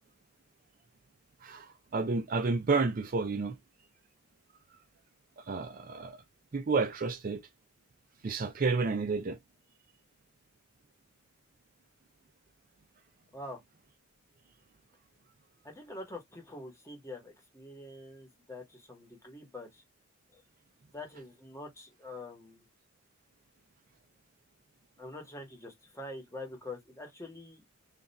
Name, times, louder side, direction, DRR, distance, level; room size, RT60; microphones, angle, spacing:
voice 1, 1.4-3.6 5.4-6.2 6.5-7.4 8.2-9.4, right 4 dB, 45° right, 0.4 m, -30 dB
voice 2, 15.6-19.8 20.3-20.4 20.9-22.6 25.0-27.6, left 2 dB, 15° left, 1.1 m, -45 dB
3.3 x 2.5 x 3.9 m
head